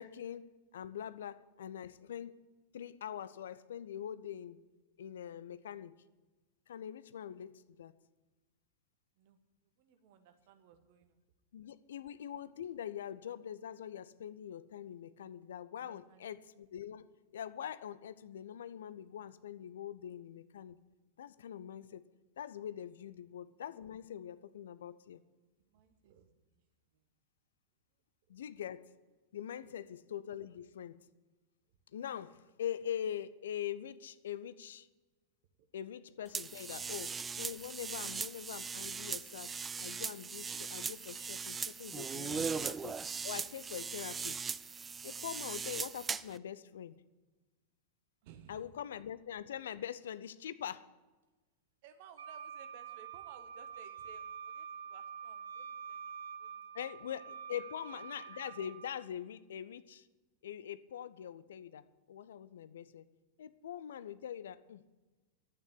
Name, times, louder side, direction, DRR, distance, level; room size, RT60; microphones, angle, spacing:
voice 1, 0.0-2.5 2.7-4.6 5.0-6.0 6.7-7.9 11.5-17.1 17.3-20.8 21.2-22.1 22.4-25.2 28.3-28.9 29.3-31.1 31.9-34.9 35.7-43.0 43.2-44.4 45.0-47.0 48.5-50.8 56.7-60.1 60.4-63.1 63.4-64.8, left 9 dB, 60° left, 15 dB, 0.6 m, -43 dB
voice 2, 9.6-11.2 15.8-16.4 23.2-23.3 25.6-26.3 26.9-27.0 29.7-29.9 36.7-36.8 42.3-42.5 48.2-48.6 51.8-56.1 56.4-56.9, right 8 dB, 50° right, 8 dB, 1.5 m, -59 dB
sound 1, 36.3-46.4, right 5 dB, 15° right, 0.4 m, -39 dB
Wind instrument woodwind instrument, 52.2-58.9, right 7 dB, 65° right, 1.1 m, -47 dB
11.5 x 9.3 x 8.5 m, 1.2 s
figure-of-eight pair, 90°, 0 cm